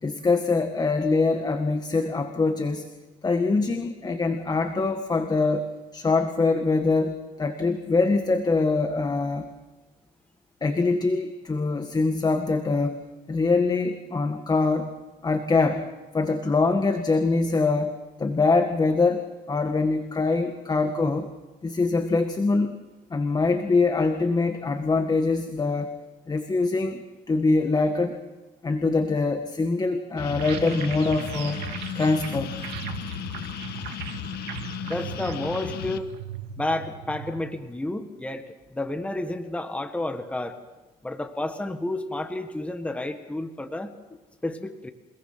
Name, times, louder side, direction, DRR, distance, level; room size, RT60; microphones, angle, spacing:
voice 1, 0.0-2.9 3.2-5.7 5.9-9.5 10.6-14.9 15.2-15.8 16.1-17.9 18.2-21.3 21.6-22.7 23.1-26.0 26.3-27.0 27.3-28.2 28.6-31.6 31.9-32.6, left 3 dB, 25° left, 7 dB, 1.8 m, -24 dB
sound 1, 30.2-36.0, left 11 dB, 70° left, 1.4 m, -35 dB
sound 2, 30.4-37.5, right 11 dB, 90° right, 2.1 m, -38 dB
voice 2, 34.8-36.1 36.6-40.6 41.0-43.9 44.4-44.9, left 2 dB, 5° left, 7 dB, 1.6 m, -31 dB
29.0 x 19.0 x 5.9 m, 1.2 s
cardioid pair, 110°, 17 cm